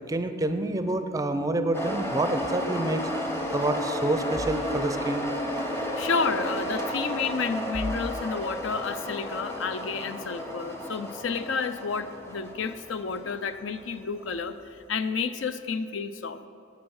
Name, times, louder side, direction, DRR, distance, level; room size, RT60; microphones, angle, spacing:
voice 1, 0.1-3.1 3.5-5.3, right 1 dB, 20° right, 9 dB, 0.4 m, -27 dB
sound 1, 1.7-14.5, equal, 15° left, 0.8 m, -33 dB
voice 2, 5.8-14.5 14.9-16.4, left 5 dB, 75° left, 12 dB, 0.5 m, -30 dB
10.5 x 8.4 x 4.8 m, 2.6 s
head